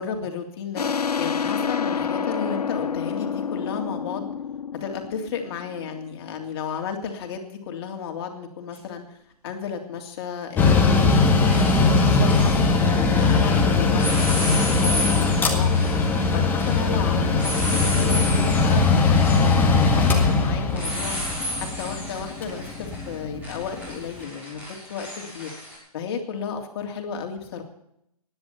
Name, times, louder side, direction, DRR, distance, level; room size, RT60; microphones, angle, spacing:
voice 1, 0.0-4.3 4.8-9.2 9.4-11.7 12.0-15.7 16.3-21.2 21.6-25.5 25.9-27.6, left 6 dB, 40° left, 3 dB, 3.0 m, -33 dB
sound 1, 0.8-6.1, left 6 dB, 80° left, 1.2 m, -28 dB
sound 2, 8.7-8.8 10.6-10.9 11.1-13.6 13.9-25.8, left 1 dB, 10° right, 6.4 m, -33 dB
Mechanical fan, 10.6-23.9, left 4 dB, 10° left, 1.9 m, -20 dB
16.0 x 10.5 x 6.9 m, 0.76 s
hypercardioid pair, 140°, 20 cm